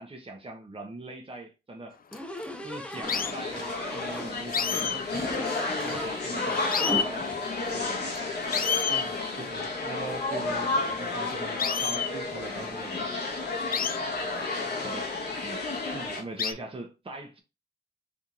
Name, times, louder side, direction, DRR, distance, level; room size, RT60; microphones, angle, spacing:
voice 1, 0.0-2.0 2.6-8.3 14.8-15.1 15.4-15.7 16.2-17.4, right 2 dB, 35° right, 0.9 m, -41 dB
sound 1, 2.1-2.4 3.1-3.3 4.5-6.1 6.4-6.5 6.7-7.1 8.1-8.2 8.5-9.1 11.6-12.1 13.7-14.0 15.1-15.2 16.4-16.5, left 7 dB, 60° left, 0.4 m, -29 dB
sound 2, 2.1-4.3 5.1-6.1 6.4-7.4, equal, 5° left, 0.6 m, -37 dB
sound 3, 3.0-16.2, left 3 dB, 90° left, 1.1 m, -32 dB
voice 2, 8.9-13.4 15.9-16.2, right 3 dB, 60° right, 1.1 m, -41 dB
3.4 x 2.9 x 3.9 m
cardioid pair, 55°, 17 cm